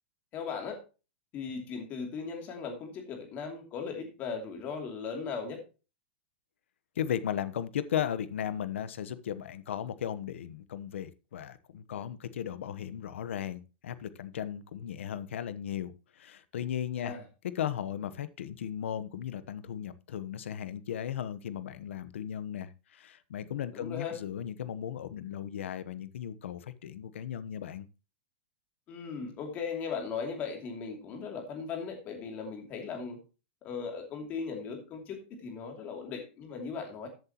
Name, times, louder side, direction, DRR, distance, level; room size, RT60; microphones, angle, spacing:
voice 1, 0.3-0.8 1.3-5.6 17.0-17.2 23.7-24.2 28.9-33.2 33.6-37.1, left 5 dB, 25° left, 2.8 m, -38 dB
voice 2, 7.0-17.2 17.5-27.9, left 9 dB, 85° left, 1.1 m, -36 dB
14.0 x 8.0 x 3.0 m
supercardioid pair, 165°, 6 cm